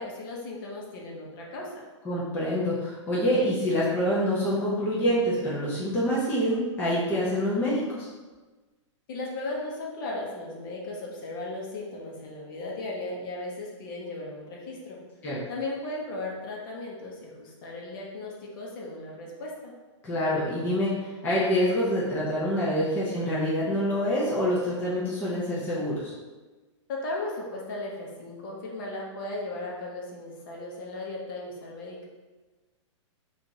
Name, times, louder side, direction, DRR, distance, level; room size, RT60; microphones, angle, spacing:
voice 1, 0.0-1.8 9.1-15.0 15.5-19.7 26.9-32.1, left 2 dB, 45° left, -2 dB, 0.8 m, -36 dB
voice 2, 2.0-8.1 15.2-15.4 20.0-26.1, equal, 10° left, -8 dB, 0.5 m, -26 dB
2.8 x 2.5 x 3.9 m, 1.3 s
hypercardioid pair, 155°, 16 cm